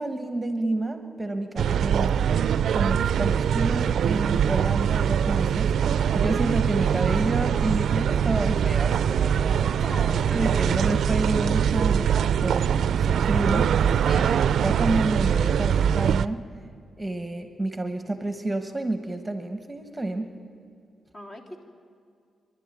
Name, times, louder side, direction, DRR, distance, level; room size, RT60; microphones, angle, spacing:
voice 1, 0.0-2.2 2.7-9.8 10.3-14.1 14.6-16.4 17.0-20.3, right 2 dB, 15° right, 7 dB, 1.3 m, -29 dB
sound 1, 1.6-16.3, right 8 dB, 75° right, 0.4 m, -23 dB
voice 2, 9.8-10.8 14.1-14.6 21.1-21.6, left 1 dB, 35° left, 1 dB, 3.2 m, -38 dB
26.0 x 11.5 x 9.9 m, 2.3 s
cardioid pair, 80°, 0 cm